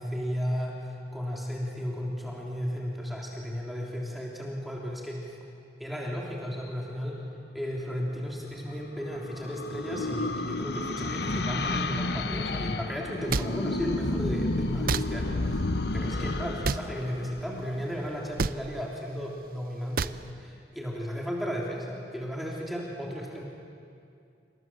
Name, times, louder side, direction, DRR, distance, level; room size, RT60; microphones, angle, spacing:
voice 1, 0.0-5.4 5.8-7.2 7.5-15.6 15.9-23.4, equal, ahead, -3 dB, 3.5 m, -34 dB
sound 1, 8.6-18.2, left 2 dB, 70° left, 0.9 m, -31 dB
sound 2, 13.3-13.5 14.9-15.0 16.6-16.8 18.4-18.6 20.0-20.2, right 4 dB, 55° right, 0.6 m, -27 dB
28.5 x 27.0 x 7.6 m, 2.4 s
head